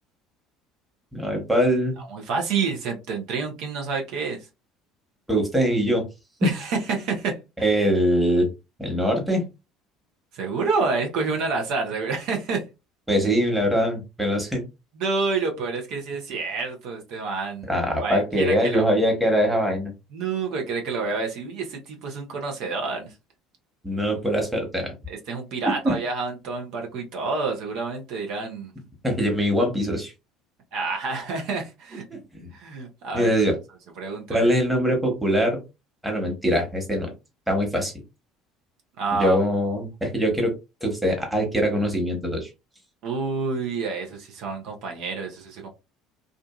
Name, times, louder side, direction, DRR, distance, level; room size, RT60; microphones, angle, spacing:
voice 1, 1.1-2.0 5.3-6.0 6.4-6.5 7.6-8.5 8.8-9.4 13.1-14.6 17.7-19.9 23.8-24.9 25.6-26.0 29.0-30.1 32.1-32.5 33.1-33.6 34.3-35.6 36.0-37.1 37.5-37.9 39.2-40.5 40.8-42.5, equal, 5° right, 1.3 m, -22 dB
voice 2, 2.0-4.4 6.4-7.4 10.3-12.6 15.0-17.7 18.0-18.9 20.1-23.1 25.1-28.7 30.7-32.0 32.5-33.3 34.0-34.5 39.0-39.4 43.0-45.7, right 4 dB, 65° right, 0.8 m, -28 dB
2.5 x 2.5 x 2.3 m
hypercardioid pair, 70°, 0 cm